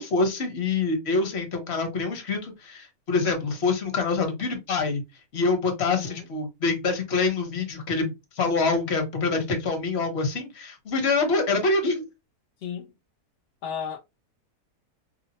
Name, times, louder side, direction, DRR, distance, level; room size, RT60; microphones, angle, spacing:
voice 1, 0.0-5.0 5.3-12.0, left 3 dB, 50° left, 1.0 m, -26 dB
voice 2, 5.9-6.3 12.6-12.9 13.6-14.0, left 7 dB, 75° left, 0.6 m, -34 dB
2.7 x 2.0 x 4.0 m
omnidirectional pair, 1.8 m